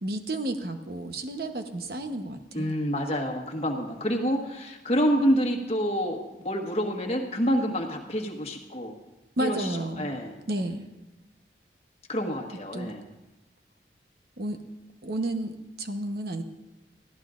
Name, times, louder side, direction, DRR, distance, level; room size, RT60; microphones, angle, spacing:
voice 1, 0.0-2.8 9.4-10.1 10.5-10.9 12.7-12.9 14.4-14.6 15.0-16.4, right 1 dB, 60° right, 6 dB, 1.0 m, -32 dB
voice 2, 2.5-8.9 9.4-10.4 12.1-13.0, equal, 35° left, 2 dB, 1.5 m, -28 dB
21.0 x 14.5 x 2.5 m, 1.0 s
head